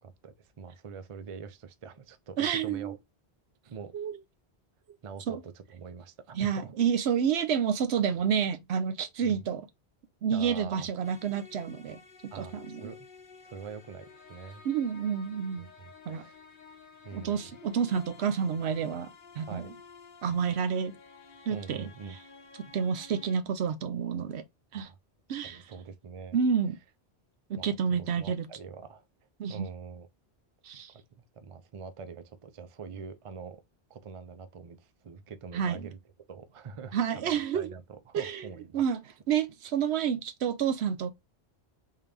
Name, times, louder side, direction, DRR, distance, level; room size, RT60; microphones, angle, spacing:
voice 1, 0.0-3.0 3.6-3.9 5.0-6.8 9.2-9.4 10.3-10.9 12.3-13.1 13.4-14.6 15.6-16.4 17.0-17.5 19.5-19.7 21.5-22.2 24.7-25.0 25.5-26.4 27.6-29.0 29.5-30.1 30.9-33.6 33.9-36.0 36.3-37.8 38.1-38.8, right 5 dB, 40° right, 0.5 m, -44 dB
voice 2, 2.4-2.9 3.9-4.2 5.3-5.4 6.3-9.7 10.2-12.0 12.3-12.8 14.6-15.7 16.1-16.2 17.1-19.1 19.3-19.7 20.2-20.9 21.5-21.9 22.6-24.4 24.7-24.9 25.3-25.6 26.3-26.8 27.5-28.5 29.4-29.7 30.6-30.9 35.5-35.9 36.9-37.7 38.1-38.5 38.7-41.1, right 7 dB, 75° right, 0.9 m, -29 dB
sound 1, 11.0-23.4, left 5 dB, 55° left, 0.8 m, -52 dB
3.7 x 2.8 x 3.3 m
omnidirectional pair, 1.1 m